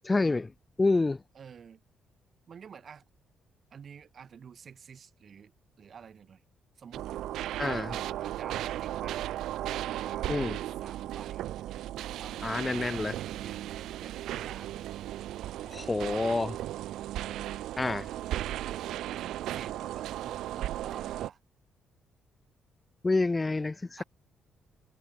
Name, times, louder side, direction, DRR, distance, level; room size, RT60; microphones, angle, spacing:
voice 1, 0.1-0.5 0.8-1.2 7.6-7.9 10.3-10.6 12.4-13.1 15.7-16.5 17.8-18.1 23.0-24.0, left 3 dB, 20° left, 0.7 m, -28 dB
voice 2, 1.3-1.8 2.5-3.0 3.7-5.5 5.8-6.4 6.8-7.1 7.9-9.2 9.7-10.6 10.8-11.5 12.2-14.8 16.0-16.6 19.0-21.4 24.0-24.1, right 7 dB, 50° right, 3.9 m, -49 dB
sound 1, 6.9-21.3, right 13 dB, 80° right, 0.6 m, -36 dB
cardioid pair, 90°, 0 cm